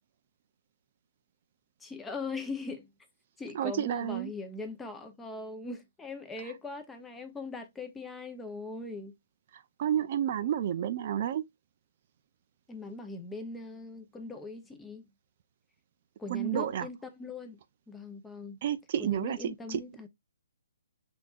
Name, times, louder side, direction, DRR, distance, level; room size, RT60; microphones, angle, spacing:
voice 1, 1.8-2.9 3.4-9.1 12.7-15.1 16.2-17.6 17.9-18.6 19.0-20.1, left 3 dB, 5° left, 0.7 m, -40 dB
voice 2, 3.5-4.3 6.4-6.5 9.5-11.4 16.3-16.9 18.6-19.8, right 10 dB, 40° right, 0.4 m, -31 dB
5.9 x 3.5 x 2.4 m
hypercardioid pair, 160°, 0 cm